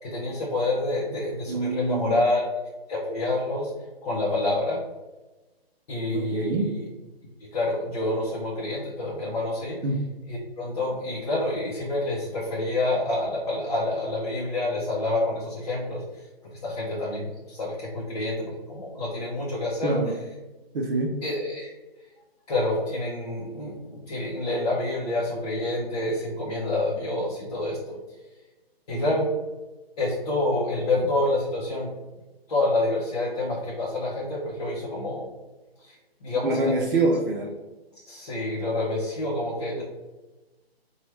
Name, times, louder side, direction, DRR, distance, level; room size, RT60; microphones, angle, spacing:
voice 1, 0.0-2.5 2.9-3.7 4.0-4.8 5.9-6.8 7.5-9.8 10.3-16.3 16.6-20.0 21.2-21.7 22.5-28.0 28.9-29.3 30.0-31.9 32.5-35.3 35.8-36.0 36.2-36.8 38.1-39.8, left 2 dB, 40° left, -6 dB, 0.6 m, -28 dB
voice 2, 1.5-2.3 6.1-6.7 9.8-10.0 19.8-20.1 20.7-21.1 28.9-29.1 36.4-37.5, right 2 dB, 60° right, -1 dB, 0.5 m, -25 dB
3.0 x 2.2 x 3.0 m, 1.1 s
hypercardioid pair, 155°, 31 cm